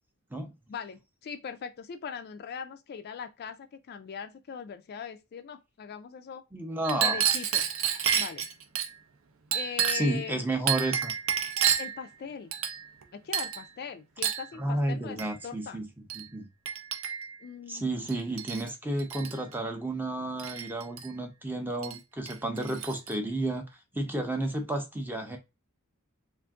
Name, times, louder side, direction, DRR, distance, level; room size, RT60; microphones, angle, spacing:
voice 1, 0.7-6.4 7.0-7.7 8.2-8.5 9.5-10.4 11.8-12.5 13.1-15.9 17.4-18.1, left 7 dB, 45° left, 0.3 m, -40 dB
voice 2, 6.5-7.2 9.9-11.1 14.6-15.9 16.1-16.5 17.7-23.7 23.9-25.4, right 1 dB, 10° right, 0.6 m, -31 dB
Chink clink, 6.8-8.9 9.5-10.2 10.7-12.0 12.5-13.0 13.3-13.6 14.2-14.5 15.2-15.3 16.1-16.2 16.6-17.4 18.1-18.7 19.0-19.4 20.4-21.1 21.8-22.0 22.3-23.1, right 9 dB, 65° right, 0.5 m, -30 dB
2.6 x 2.5 x 3.5 m
head